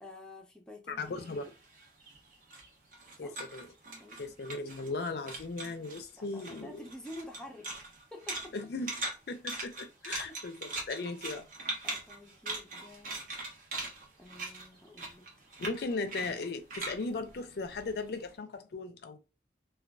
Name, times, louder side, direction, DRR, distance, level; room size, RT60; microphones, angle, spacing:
voice 1, 0.0-1.2 3.2-3.4 4.0-4.5 6.1-7.8 8.1-8.5 10.2-10.3 11.8-13.3 14.2-15.3, left 1 dB, 5° left, 0.6 m, -49 dB
voice 2, 0.9-1.5 3.2-3.7 4.2-6.7 8.5-11.4 15.6-19.2, left 3 dB, 60° left, 0.4 m, -37 dB
sound 1, 1.1-5.0 5.3-6.0 6.4-18.2, right 2 dB, 45° right, 0.7 m, -41 dB
2.5 x 2.3 x 2.2 m
head